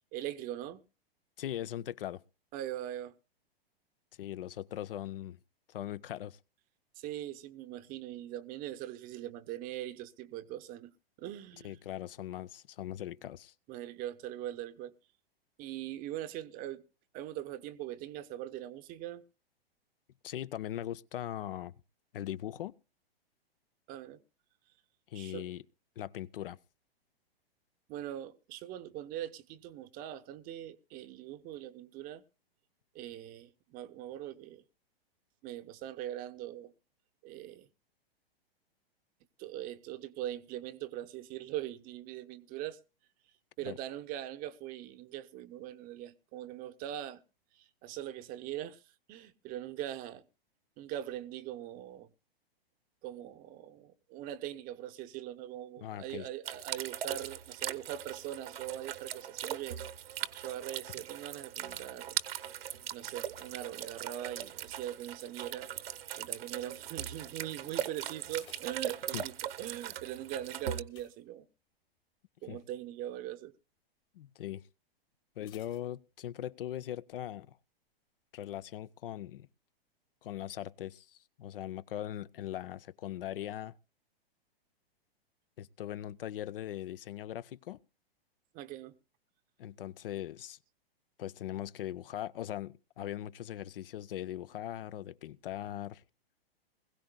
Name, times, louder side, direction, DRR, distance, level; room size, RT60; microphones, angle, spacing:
voice 1, 0.1-0.8 2.5-3.1 7.0-10.9 11.2-11.8 13.7-14.9 15.6-16.8 17.1-19.2 23.9-24.2 25.1-25.5 27.9-32.2 32.9-34.6 35.4-36.7 37.2-37.7 39.4-42.8 43.6-47.2 47.5-48.8 49.1-50.2 50.8-52.1 53.0-59.8 60.1-62.2 62.9-65.7 66.2-71.5 72.4-73.5 88.5-88.9, right 12 dB, 30° right, 0.7 m, -41 dB
voice 2, 1.4-2.2 4.2-5.4 5.7-6.4 11.6-13.5 20.2-21.7 22.1-22.7 25.1-25.6 26.0-26.6 43.6-43.8 55.8-56.3 69.1-69.2 72.5-72.6 74.1-74.6 75.4-77.6 78.3-79.5 80.2-83.7 85.6-87.8 89.6-90.6 91.2-96.0, left 12 dB, 65° left, 0.6 m, -40 dB
sound 1, 56.4-70.8, right 10 dB, 70° right, 1.0 m, -40 dB
sound 2, 63.3-64.8 65.0-65.5 66.1-66.5 66.8-66.9 67.3-67.4 68.0-69.6 70.8-72.0 72.3-72.6 73.0-73.1 75.4-76.6 76.9-77.0, left 11 dB, 35° left, 1.4 m, -63 dB
21.0 x 16.0 x 2.2 m
hypercardioid pair, 120°, 31 cm